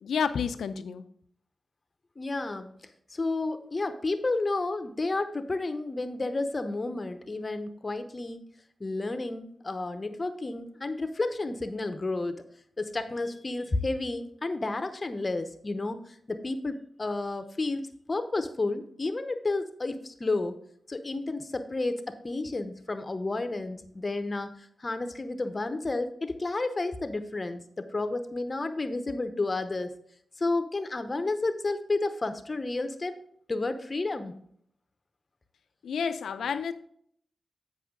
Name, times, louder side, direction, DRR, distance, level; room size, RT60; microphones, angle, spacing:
voice 1, 0.0-1.0 35.8-36.7, left 6 dB, 85° left, 11 dB, 0.5 m, -30 dB
voice 2, 2.2-2.7 3.1-8.4 8.8-12.4 12.8-20.6 20.9-29.9 30.4-33.2 33.5-34.3, left 2 dB, 40° left, 10 dB, 0.8 m, -31 dB
9.3 x 5.5 x 3.7 m, 0.65 s
cardioid pair, 40°, 0 cm